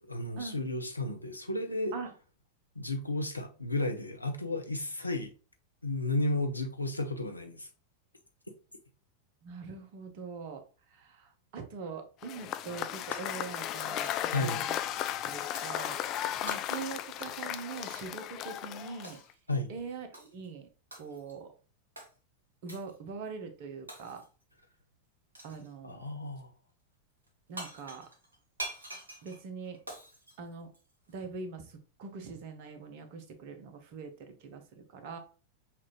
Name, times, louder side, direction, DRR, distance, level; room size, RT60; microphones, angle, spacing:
voice 1, 0.0-1.9 2.8-5.3 5.8-7.7 14.2-14.6 19.5-19.7 25.8-26.5, left 2 dB, 85° left, 0.6 m, -33 dB
voice 2, 9.4-14.6 15.2-19.2 19.7-20.7 21.0-21.5 22.6-24.2 25.4-26.1 27.5-28.1 29.2-29.8 30.4-30.7 31.1-35.2, right 5 dB, 45° right, 0.8 m, -43 dB
Cheering / Applause / Crowd, 12.2-19.3, left 12 dB, 35° left, 0.3 m, -35 dB
Shatter, 13.1-13.8 14.0-15.0 15.6-15.8 16.5-18.1 19.0-19.4 20.1-20.5 20.9-21.4 22.0-22.1 22.7-23.0 23.9-24.4 25.3-25.7 27.3-27.4 27.6-31.1, right 1 dB, 75° right, 1.1 m, -46 dB
5.7 x 2.5 x 3.0 m
figure-of-eight pair, 90°, 0 cm